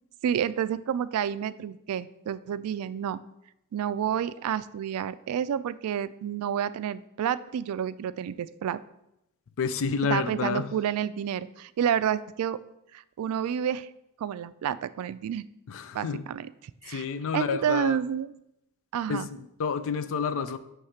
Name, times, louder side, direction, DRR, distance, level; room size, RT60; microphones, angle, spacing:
voice 1, 0.2-3.2 3.7-8.8 10.1-12.6 12.9-13.9 14.2-15.4 15.9-16.5 16.8-17.1 17.3-18.4 18.9-19.3, right 9 dB, 75° right, 16 dB, 0.3 m, -29 dB
voice 2, 9.6-10.7 15.7-16.2 16.9-18.0 19.1-20.6, left 5 dB, 65° left, 12 dB, 0.4 m, -29 dB
6.4 x 3.2 x 5.6 m, 0.84 s
head